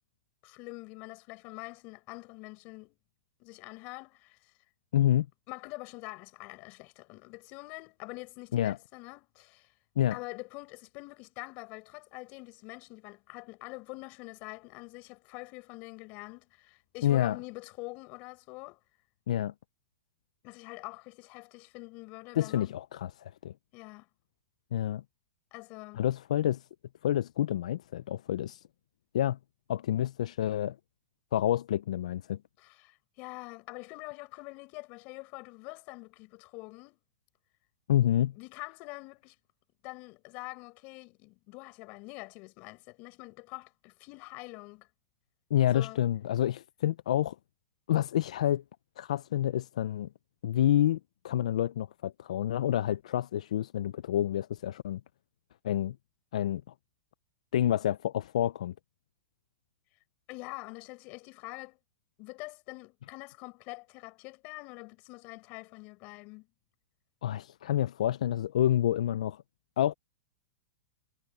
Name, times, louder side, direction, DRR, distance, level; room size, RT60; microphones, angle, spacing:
voice 1, 0.4-3.0 3.4-4.5 5.5-9.7 10.1-18.8 20.4-22.7 23.7-24.1 25.5-26.1 32.6-37.0 38.4-39.3 39.8-44.9 45.7-46.0 60.3-61.8 62.2-66.5, left 26 dB, 45° left, 7.4 m, -45 dB
voice 2, 4.9-5.3 8.5-8.8 10.0-10.2 17.0-17.4 19.3-19.5 22.3-23.5 24.7-25.0 25.9-26.6 27.0-28.6 29.1-29.4 29.7-30.8 31.3-32.4 37.9-38.3 45.5-47.4 47.9-48.6 49.0-50.1 50.4-51.0 51.2-55.0 55.6-56.0 56.3-56.6 57.5-58.7 67.2-69.4 69.8-69.9, left 11 dB, 75° left, 0.5 m, -28 dB
hypercardioid pair, 135°, 4 cm